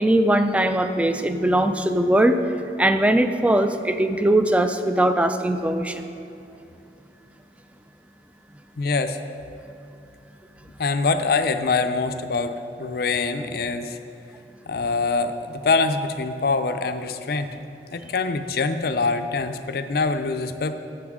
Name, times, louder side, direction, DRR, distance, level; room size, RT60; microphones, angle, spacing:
voice 1, 0.0-2.4 2.8-6.1, right 1 dB, 5° right, 8 dB, 0.3 m, -20 dB
voice 2, 8.8-9.2 10.8-14.0 14.7-17.5 17.9-20.8, left 4 dB, 55° left, 9 dB, 0.5 m, -24 dB
12.0 x 8.0 x 3.7 m, 2.7 s
head